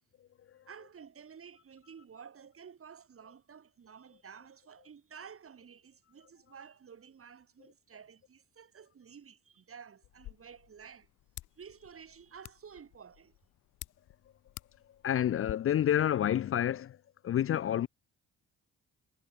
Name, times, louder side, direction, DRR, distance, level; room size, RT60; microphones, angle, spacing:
voice 1, 0.7-11.1 11.6-13.4, right 7 dB, 45° right, 7.7 m, -52 dB
sound 1, 10.0-15.5, left 15 dB, 90° left, 5.4 m, -51 dB
voice 2, 15.0-17.0 17.2-17.9, left 10 dB, 45° left, 0.5 m, -28 dB
cardioid pair, 90°, 30 cm